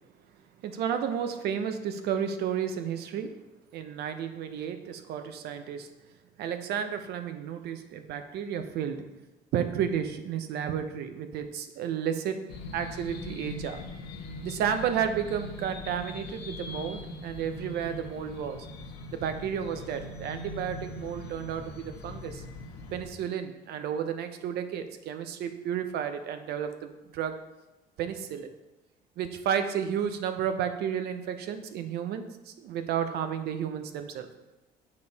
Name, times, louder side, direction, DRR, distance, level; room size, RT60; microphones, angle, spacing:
voice 1, 0.6-3.3 3.7-5.9 6.4-9.0 9.5-12.4 12.7-13.8 14.4-18.7 19.1-22.4 22.9-27.4 28.0-28.5 29.2-34.3, right 8 dB, 75° right, 8 dB, 0.7 m, -32 dB
sound 1, 12.5-23.1, left 2 dB, 75° left, 1.0 m, -41 dB
6.8 x 5.3 x 4.0 m, 1.0 s
cardioid pair, 110°, 17 cm